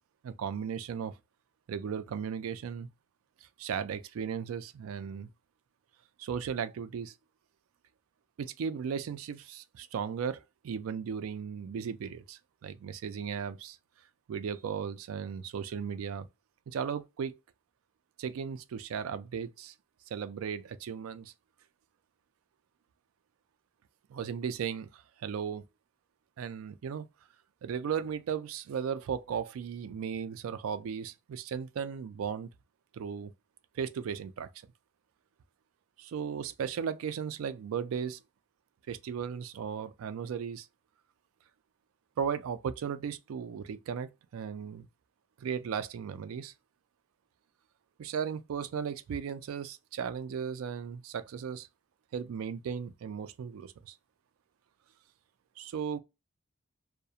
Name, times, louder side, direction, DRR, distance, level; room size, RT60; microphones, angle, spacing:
voice 1, 0.2-1.2 1.7-2.9 3.6-5.3 6.2-7.1 8.4-13.8 14.3-16.3 16.7-17.3 18.2-19.7 20.1-21.3 24.1-25.6 26.4-27.1 27.6-32.5 32.9-33.3 33.7-34.5 36.0-38.2 38.9-40.7 42.2-44.9 45.4-46.5 48.0-51.7 52.1-53.9 55.6-56.0, right 7 dB, 90° right, 0.3 m, -36 dB
2.3 x 2.1 x 2.7 m
head